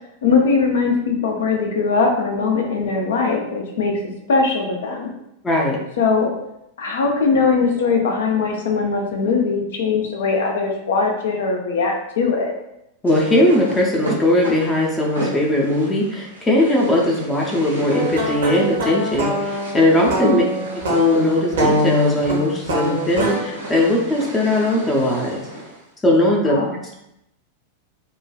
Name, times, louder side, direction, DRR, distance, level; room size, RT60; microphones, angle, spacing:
voice 1, 0.2-3.9 4.3-5.1 6.0-6.3 6.8-12.5 20.2-20.5 26.4-26.8, left 4 dB, 60° left, 2 dB, 0.5 m, -20 dB
voice 2, 5.4-5.8 13.0-20.4 20.9-25.4 26.0-26.5, left 1 dB, 15° left, -2 dB, 0.5 m, -19 dB
sound 1, 13.0-25.9, right 2 dB, 85° right, 1.0 m, -34 dB
sound 2, 17.9-23.4, equal, 60° right, 0.7 m, -23 dB
3.1 x 2.2 x 2.2 m, 0.83 s
figure-of-eight pair, 90°, 0 cm